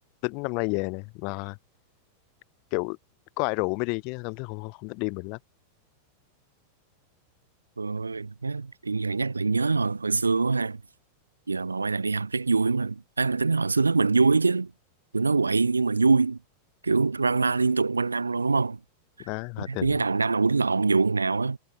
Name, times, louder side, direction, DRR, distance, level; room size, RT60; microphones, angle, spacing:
voice 1, 0.2-1.6 2.7-3.0 3.4-5.4 19.3-20.0, left 33 dB, 45° left, 0.3 m, -30 dB
voice 2, 7.8-10.8 11.5-14.7 15.1-16.4 16.8-18.8 19.6-21.6, right 4 dB, 80° right, 0.3 m, -24 dB
figure-of-eight pair, 90°, 0 cm